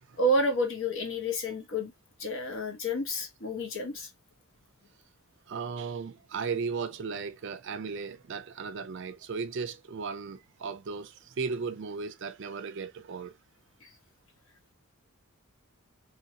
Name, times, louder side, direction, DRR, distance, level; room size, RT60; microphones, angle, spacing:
voice 1, 0.2-1.9 2.2-4.1 13.8-13.9, equal, 60° left, 1.1 m, -29 dB
voice 2, 5.5-13.3, right 5 dB, 55° right, 0.4 m, -36 dB
2.9 x 2.7 x 2.8 m
head